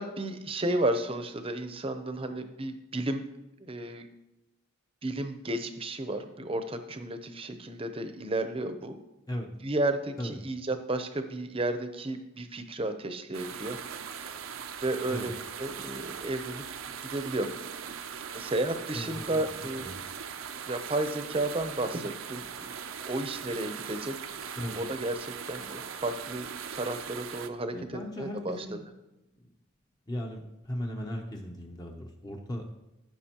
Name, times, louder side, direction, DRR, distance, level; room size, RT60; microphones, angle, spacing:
voice 1, 0.0-3.2 3.6-4.0 5.0-9.0 9.6-14.2 14.8-16.6 17.1-17.5 18.3-19.9 20.7-22.7 23.0-24.4 24.7-27.7 28.2-28.6, right 2 dB, 25° right, 8 dB, 0.7 m, -33 dB
sound 1, 13.3-27.5, right 7 dB, 75° right, 0.6 m, -40 dB
voice 2, 18.9-19.3 19.8-20.0 24.6-24.8 27.7-28.8 29.4-29.5 30.1-32.8, equal, 20° left, 1 dB, 0.7 m, -37 dB
14.5 x 6.0 x 2.9 m, 0.97 s
head